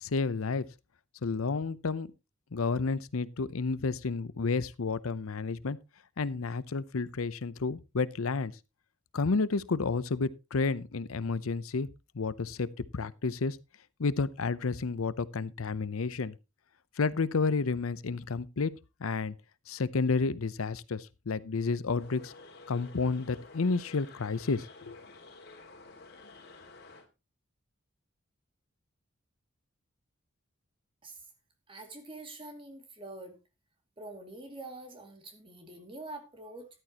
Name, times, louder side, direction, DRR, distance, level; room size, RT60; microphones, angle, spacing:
voice 1, 0.0-0.6 1.2-2.1 2.5-5.8 6.2-8.5 9.1-11.9 12.1-12.7 12.9-13.6 14.0-16.3 17.0-18.7 19.0-19.3 19.7-22.3 22.7-25.0, left 4 dB, 85° left, 0.7 m, -31 dB
sound 1, 21.9-27.1, left 3 dB, 50° left, 2.3 m, -51 dB
voice 2, 31.7-33.4 34.0-36.7, right 2 dB, 25° right, 2.4 m, -45 dB
13.5 x 11.0 x 2.9 m
head